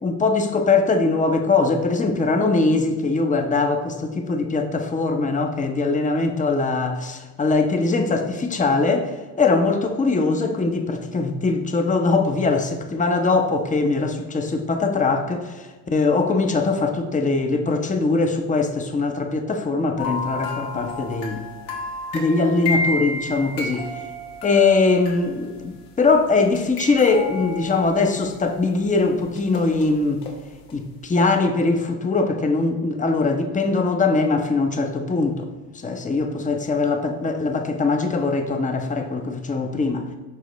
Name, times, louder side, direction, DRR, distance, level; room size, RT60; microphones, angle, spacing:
voice 1, 0.0-21.5 22.1-23.9 24.4-30.2 30.7-35.5 35.7-40.1, left 3 dB, 15° left, 5 dB, 0.8 m, -21 dB
sound 1, 20.0-25.9 26.5-28.6 29.3-30.3 30.7-30.8, left 2 dB, 85° left, 1.3 m, -31 dB
10.5 x 3.6 x 3.1 m, 1.3 s
supercardioid pair, 75°, 44 cm